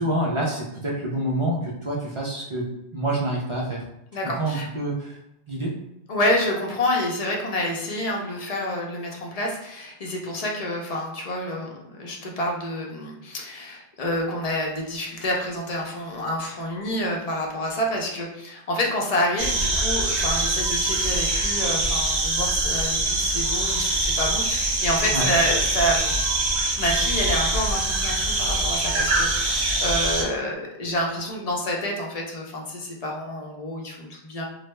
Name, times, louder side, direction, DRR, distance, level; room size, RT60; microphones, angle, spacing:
voice 1, 0.0-2.7 2.9-3.8 4.4-5.2 5.5-5.7 25.1-25.3, right 1 dB, 40° right, -4 dB, 0.4 m, -27 dB
voice 2, 4.1-4.7 6.1-26.2 26.8-34.4, left 1 dB, 45° left, -1 dB, 0.6 m, -28 dB
sound 1, 19.4-30.2, right 2 dB, 80° right, 1.1 m, -24 dB
3.3 x 2.0 x 3.1 m, 0.87 s
omnidirectional pair, 1.1 m